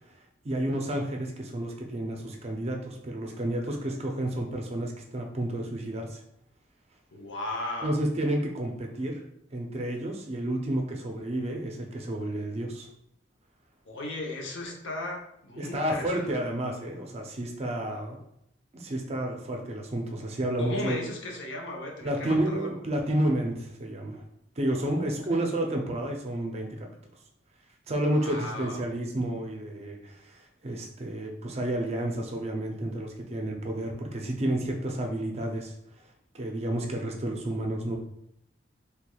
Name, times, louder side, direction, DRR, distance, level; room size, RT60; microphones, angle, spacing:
voice 1, 0.4-6.2 7.8-9.2 9.5-12.9 15.6-18.2 18.7-21.0 22.0-24.2 24.6-26.9 27.9-36.1 36.3-38.0, right 1 dB, 35° right, 2 dB, 0.5 m, -31 dB
voice 2, 7.1-8.0 13.9-16.3 20.6-22.7 24.7-25.1 28.1-28.9, left 2 dB, 80° left, 0 dB, 0.7 m, -36 dB
3.3 x 3.1 x 2.3 m, 0.75 s
head